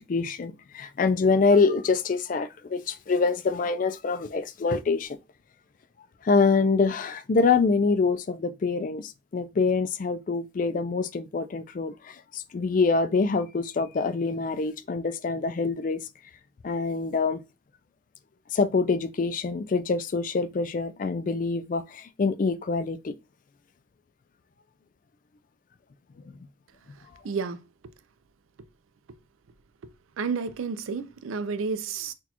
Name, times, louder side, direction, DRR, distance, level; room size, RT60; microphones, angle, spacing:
voice 1, 0.0-5.2 6.2-16.0 16.6-17.4 18.5-23.1, left 4 dB, 40° left, 0.3 m, -25 dB
voice 2, 27.2-27.9 29.8-32.1, right 5 dB, 90° right, 0.4 m, -31 dB
6.0 x 2.3 x 2.9 m
head